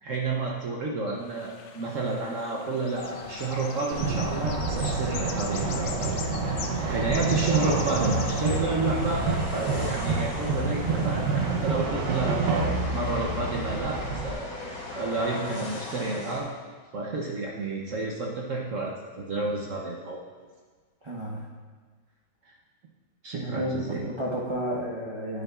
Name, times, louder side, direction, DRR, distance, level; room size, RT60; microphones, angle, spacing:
voice 1, 0.0-6.1 6.4-14.5 14.9-16.5 16.9-20.2 23.2-24.1, right 3 dB, 55° right, -2 dB, 1.0 m, -30 dB
sound 1, 1.2-11.8, left 6 dB, 80° left, 1.3 m, -42 dB
sound 2, 2.9-16.4, left 2 dB, 50° left, 2.7 m, -38 dB
sound 3, 3.9-14.3, right 4 dB, 75° right, 1.4 m, -28 dB
voice 2, 21.0-21.5 23.3-23.7 24.1-25.4, equal, 25° right, -5 dB, 0.6 m, -31 dB
9.3 x 9.3 x 2.4 m, 1.5 s
omnidirectional pair, 1.9 m